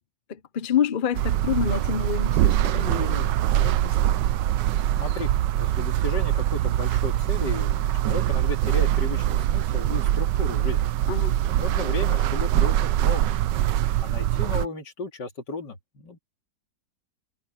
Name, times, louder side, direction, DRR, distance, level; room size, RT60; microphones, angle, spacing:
voice 1, 0.3-4.3 11.1-11.4, left 8 dB, 40° left, 0.8 m, -28 dB
sound 1, 1.1-14.7, right 12 dB, 90° right, 1.3 m, -23 dB
voice 2, 5.0-5.3 5.6-10.9 11.6-13.3 14.0-16.2, left 2 dB, 80° left, 3.2 m, -34 dB
omnidirectional pair, 1.9 m